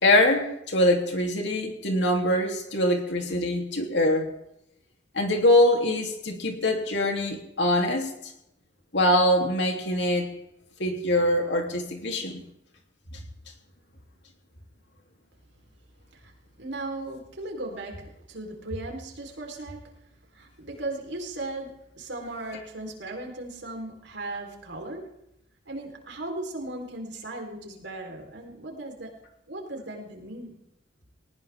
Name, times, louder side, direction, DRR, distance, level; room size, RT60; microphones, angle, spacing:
voice 1, 0.0-4.3 5.1-8.1 8.9-10.3 10.8-12.4 13.1-13.2, left 1 dB, 75° left, 2 dB, 3.3 m, -23 dB
voice 2, 16.6-19.9 20.3-25.1 25.7-29.2 29.5-30.6, right 2 dB, 80° right, 1 dB, 4.3 m, -37 dB
19.5 x 19.0 x 3.7 m, 0.81 s
head